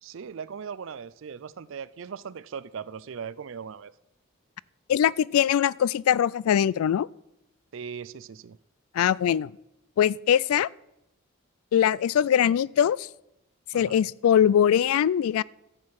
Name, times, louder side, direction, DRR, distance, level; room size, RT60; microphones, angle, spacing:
voice 1, 0.0-3.9 7.7-8.6 13.7-14.0, right 6 dB, 65° right, 0.4 m, -39 dB
voice 2, 4.9-7.1 8.9-9.5 10.0-10.7 11.7-13.1 13.7-15.4, left 9 dB, 90° left, 0.3 m, -22 dB
13.5 x 7.6 x 4.7 m
head